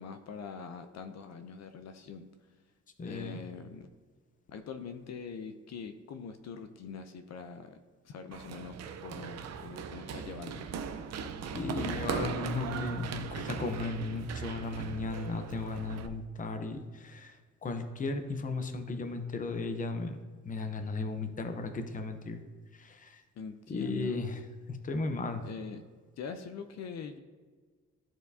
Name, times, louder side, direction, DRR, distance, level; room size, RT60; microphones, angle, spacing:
voice 1, 0.0-2.3 3.0-3.9 4.5-7.8 8.0-10.7 23.4-24.2 25.4-25.8 26.2-27.2, left 6 dB, 65° left, 8 dB, 0.5 m, -43 dB
voice 2, 3.0-3.4 11.5-20.2 20.4-22.4 22.7-23.2 23.7-24.4 24.7-25.4, left 3 dB, 25° left, 6 dB, 0.7 m, -35 dB
Run, 8.3-16.1, right 6 dB, 60° right, 0.6 m, -39 dB
13.5 x 4.5 x 2.7 m, 1.5 s
wide cardioid pair, 150°, 29 cm